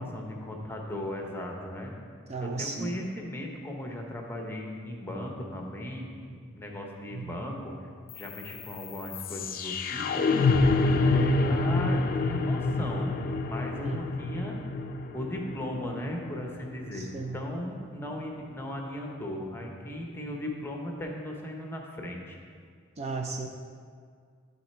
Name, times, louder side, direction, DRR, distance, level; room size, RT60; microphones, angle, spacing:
voice 1, 0.0-1.9 2.4-7.7 8.1-10.3 11.0-14.6 15.1-22.4, left 1 dB, 10° left, 1 dB, 0.8 m, -37 dB
voice 2, 2.3-2.9 7.1-7.4 13.8-14.0 17.1-17.4 23.0-23.5, right 4 dB, 30° right, 3 dB, 0.4 m, -34 dB
sound 1, 8.1-18.1, left 3 dB, 45° left, 0.4 m, -28 dB
11.5 x 4.1 x 4.3 m, 2.1 s
head